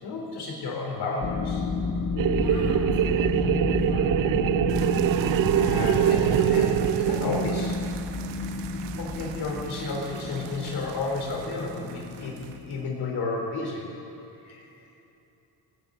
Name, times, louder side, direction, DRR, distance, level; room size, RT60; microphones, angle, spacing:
voice 1, 0.0-1.7 5.5-7.8 8.3-8.6 9.0-13.9 14.4-14.7, left 3 dB, 65° left, -1 dB, 3.9 m, -32 dB
sound 1, 1.2-12.8, left 3 dB, 35° left, 1.2 m, -31 dB
sound 2, 2.2-7.9, right 12 dB, 50° right, 0.5 m, -24 dB
voice 2, 2.3-4.2, equal, 15° left, -5 dB, 3.4 m, -42 dB
sound 3, 4.7-12.8, right 9 dB, 80° right, 0.9 m, -42 dB
19.5 x 6.7 x 8.9 m, 2.9 s
cardioid pair, 80°, 42 cm